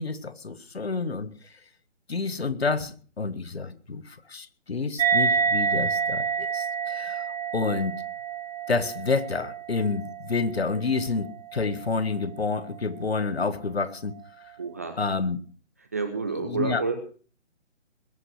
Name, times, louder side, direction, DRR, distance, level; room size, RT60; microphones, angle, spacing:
voice 1, 0.0-1.3 2.1-8.0 8.7-14.2 15.0-15.4 16.4-16.8, left 4 dB, 60° left, 1.6 m, -29 dB
sound 1, 5.0-11.9, right 5 dB, 30° right, 1.7 m, -28 dB
voice 2, 14.6-15.0 15.8-17.0, right 4 dB, 15° right, 0.6 m, -30 dB
21.0 x 8.6 x 6.1 m
figure-of-eight pair, 145°, 35 cm